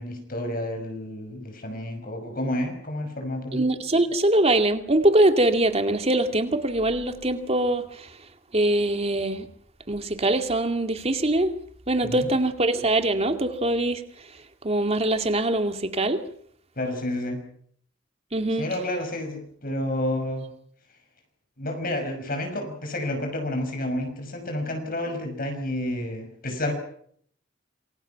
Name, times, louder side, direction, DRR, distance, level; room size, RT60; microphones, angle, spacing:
voice 1, 0.0-3.6 12.0-12.3 16.8-17.4 18.5-20.5 21.6-26.7, left 1 dB, 45° left, 5 dB, 5.9 m, -30 dB
voice 2, 3.5-8.1 8.5-9.5 9.9-11.5 11.9-14.0 14.6-16.2 18.3-18.7, right 1 dB, 30° right, 7 dB, 2.3 m, -23 dB
27.5 x 24.0 x 5.9 m, 0.63 s
head